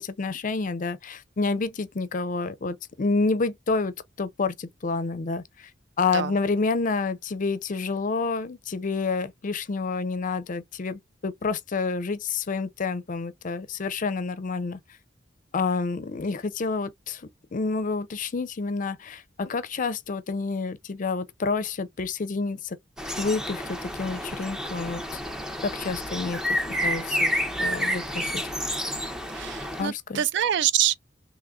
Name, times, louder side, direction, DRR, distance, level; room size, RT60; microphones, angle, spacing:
voice 1, 0.0-5.7 6.0-14.8 15.5-17.2 17.5-22.8 23.2-25.0 25.6-26.4 26.8-27.3 27.6-28.4 29.8-30.2, left 4 dB, 45° left, 0.5 m, -29 dB
sound 1, 23.0-29.8, equal, 5° right, 0.5 m, -30 dB
voice 2, 29.3-31.0, right 10 dB, 65° right, 0.4 m, -25 dB
3.6 x 3.1 x 2.4 m
head